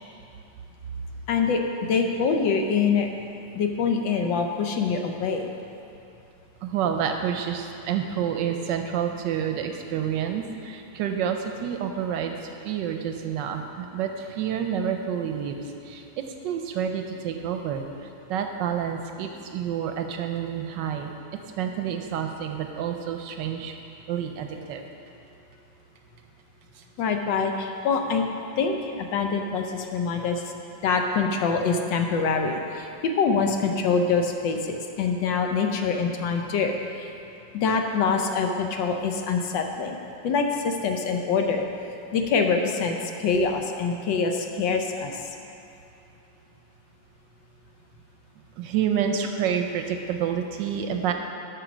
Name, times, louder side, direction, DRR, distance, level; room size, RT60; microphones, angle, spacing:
voice 1, 1.3-3.1 3.5-5.5 27.0-28.2 28.6-30.4 30.8-37.1 37.5-40.0 40.2-41.6 42.1-45.2, left 5 dB, 75° left, 4 dB, 1.4 m, -25 dB
voice 2, 6.6-17.9 18.3-21.1 21.6-23.7 24.1-24.8 48.6-51.1, right 8 dB, 75° right, 5 dB, 1.2 m, -29 dB
8.2 x 6.0 x 6.0 m, 2.7 s
omnidirectional pair, 2.1 m